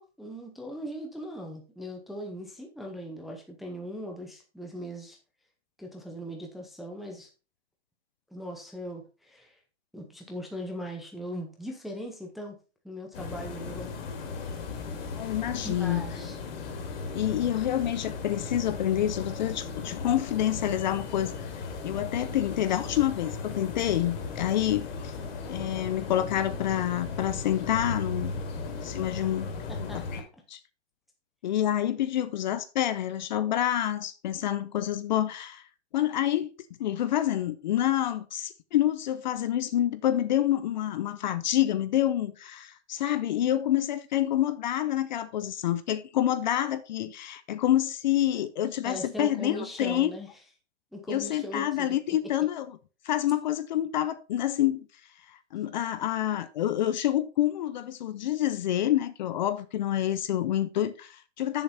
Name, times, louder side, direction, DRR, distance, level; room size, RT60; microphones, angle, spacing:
voice 1, 0.0-5.2 5.8-7.3 8.3-9.6 9.9-12.6 12.8-13.9 15.6-16.4 29.7-30.0 48.8-50.3 50.9-52.2, equal, ahead, 0.6 m, -39 dB
sound 1, 13.1-30.2, left 4 dB, 60° left, 2.4 m, -36 dB
voice 2, 15.2-16.0 17.1-21.3 21.8-25.1 25.5-28.3 28.6-29.5 29.9-30.2 30.5-30.6 31.4-35.6 35.9-36.5 36.8-50.1 51.1-52.7 53.0-54.9 55.3-61.6, left 12 dB, 40° left, 0.6 m, -27 dB
7.7 x 6.9 x 4.2 m
hypercardioid pair, 160°, 34 cm